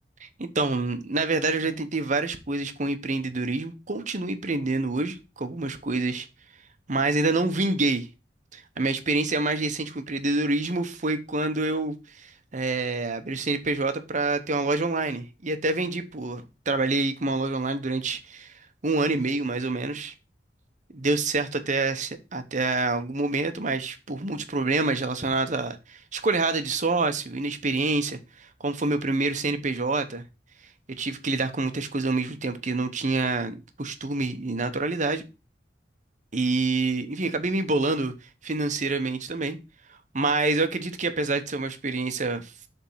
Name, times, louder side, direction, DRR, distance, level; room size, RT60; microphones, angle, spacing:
voice 1, 0.2-6.3 6.9-8.1 8.5-18.5 18.8-20.1 20.9-30.2 30.9-35.2 36.3-38.1 38.4-39.6 40.1-42.5, right 3 dB, 45° right, 1.0 m, -27 dB
7.3 x 3.6 x 5.5 m
head